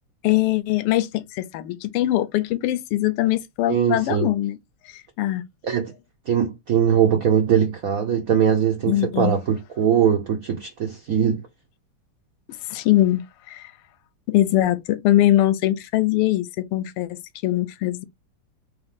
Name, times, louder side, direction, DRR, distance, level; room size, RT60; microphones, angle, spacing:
voice 1, 0.2-4.6 4.8-5.4 8.9-9.4 12.7-13.7 14.3-18.0, left 14 dB, 90° left, 1.5 m, -22 dB
voice 2, 3.7-4.3 5.6-5.9 6.3-11.4, right 8 dB, 75° right, 0.7 m, -21 dB
3.6 x 3.1 x 3.6 m
omnidirectional pair, 2.4 m